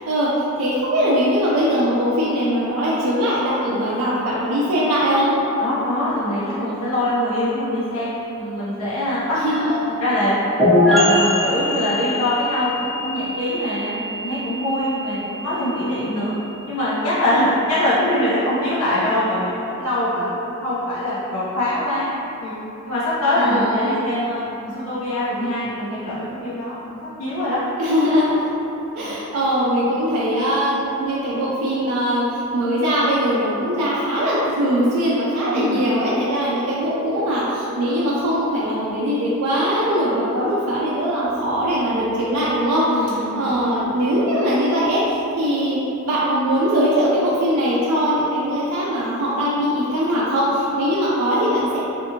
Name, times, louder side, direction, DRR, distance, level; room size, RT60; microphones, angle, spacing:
voice 1, 0.1-5.4 9.3-9.7 23.3-24.0 27.8-28.5 28.9-42.8 43.3-45.8 46.0-51.8, equal, 85° right, -7 dB, 0.4 m, -21 dB
voice 2, 5.6-9.4 9.7-10.6 10.8-16.4 16.7-22.1 22.4-22.5 22.9-27.6 29.0-29.2 35.5-35.8 42.8-43.5, left 1 dB, 85° left, -10 dB, 0.6 m, -23 dB
sound 1, 10.6-18.1, left 1 dB, ahead, 0.6 m, -23 dB
2.6 x 2.5 x 2.7 m, 2.9 s
head